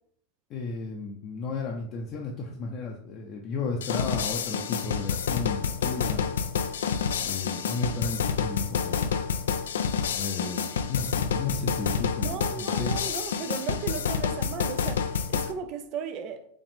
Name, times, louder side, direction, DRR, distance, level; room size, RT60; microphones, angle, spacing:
voice 1, 0.5-6.4 7.2-9.1 10.2-12.9, left 4 dB, 45° left, 0.6 m, -34 dB
sound 1, 3.8-15.5, left 6 dB, 85° left, 0.4 m, -28 dB
voice 2, 12.2-16.5, right 7 dB, 50° right, 0.5 m, -36 dB
4.9 x 2.5 x 3.6 m
hypercardioid pair, 100°, 0 cm